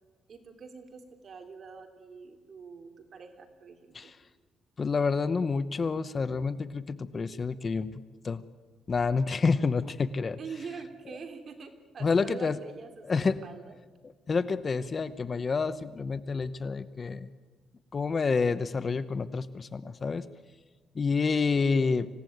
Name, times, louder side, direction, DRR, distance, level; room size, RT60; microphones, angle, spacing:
voice 1, 0.3-4.1 10.4-13.8, right 5 dB, 45° right, 5 dB, 3.4 m, -45 dB
voice 2, 4.8-7.9 8.2-8.4 8.9-10.4 12.0-12.6 13.1-13.4 14.3-17.3 17.9-20.2 20.9-22.1, left 4 dB, 35° left, 14 dB, 0.9 m, -28 dB
26.0 x 17.0 x 9.3 m, 1.4 s
cardioid pair, 115°, 0 cm